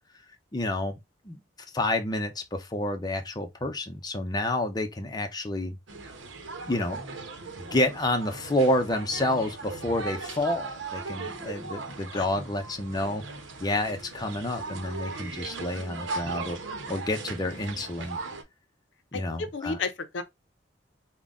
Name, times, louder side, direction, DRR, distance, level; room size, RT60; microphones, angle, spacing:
voice 1, 0.5-0.9 1.3-1.4 1.7-5.8 6.7-7.0 7.6-13.2 13.6-18.2 19.1-19.8, left 1 dB, 20° left, 0.6 m, -29 dB
sound 1, 5.9-18.4, right 3 dB, 90° right, 0.8 m, -38 dB
voice 2, 19.1-20.2, left 4 dB, 75° left, 0.6 m, -32 dB
3.9 x 2.2 x 3.4 m
head